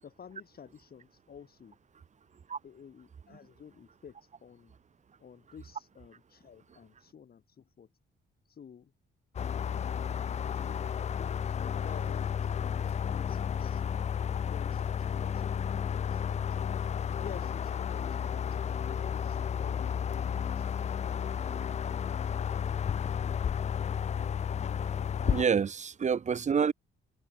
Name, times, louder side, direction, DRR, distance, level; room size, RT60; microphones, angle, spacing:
voice 1, 0.0-1.8 2.6-4.7 5.2-7.9 8.5-8.9 10.5-13.8 14.2-16.8 17.2-18.6 18.8-21.7, left 7 dB, 50° left, 5.4 m, -51 dB
sound 1, 9.3-25.4, left 8 dB, 35° left, 0.4 m, -32 dB
voice 2, 25.2-26.7, right 6 dB, 35° right, 0.9 m, -28 dB
cardioid pair, 90°, 20 cm